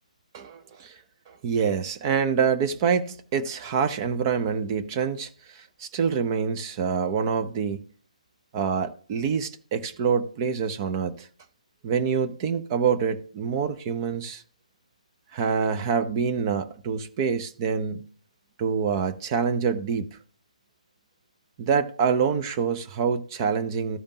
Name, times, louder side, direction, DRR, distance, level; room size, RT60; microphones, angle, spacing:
voice 1, 1.3-7.8 8.5-11.3 11.8-14.4 15.3-18.1 18.6-20.1 21.6-24.0, right 6 dB, 30° right, 0.6 m, -26 dB
14.0 x 5.1 x 2.8 m
figure-of-eight pair, 145°, 4 cm